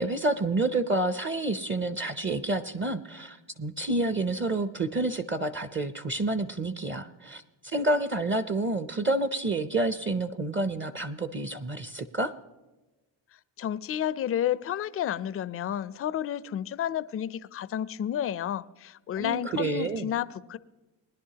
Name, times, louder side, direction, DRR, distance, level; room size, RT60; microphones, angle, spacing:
voice 1, 0.0-12.3 19.2-20.1, right 2 dB, 25° right, 0.6 m, -29 dB
voice 2, 13.6-20.6, left 10 dB, 30° left, 0.4 m, -31 dB
20.5 x 10.5 x 2.8 m
cardioid pair, 80°, 50 cm